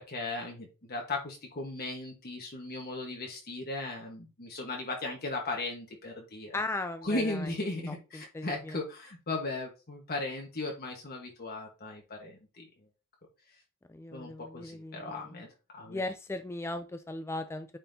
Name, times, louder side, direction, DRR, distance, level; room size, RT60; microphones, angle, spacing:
voice 1, 0.0-6.6 7.0-12.7 14.1-15.5 15.7-16.0, left 2 dB, 45° left, 1.3 m, -37 dB
voice 2, 6.5-7.4 8.1-8.8 13.9-15.2 15.9-17.7, left 2 dB, 10° left, 0.3 m, -37 dB
8.9 x 4.2 x 2.7 m
head